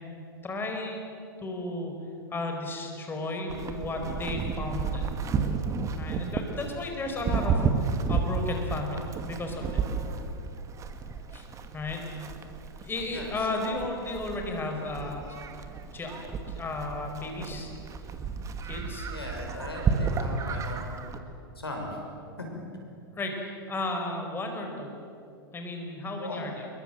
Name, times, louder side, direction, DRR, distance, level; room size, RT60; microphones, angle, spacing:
voice 1, 0.4-1.0 1.4-1.9 2.3-5.1 6.0-9.7 11.3-11.5 11.7-12.0 12.8-15.4 15.9-16.2 16.6-17.7 18.6-19.1 23.2-24.9 25.5-26.7, left 2 dB, 15° left, 3 dB, 4.8 m, -34 dB
Livestock farm animals working animals, 3.5-21.2, right 5 dB, 25° right, 2.2 m, -32 dB
voice 2, 19.1-21.0 21.5-22.0 22.4-22.5 26.2-26.4, left 1 dB, 85° left, 1 dB, 6.2 m, -38 dB
27.5 x 23.0 x 7.8 m, 2.6 s
figure-of-eight pair, 100°, 12 cm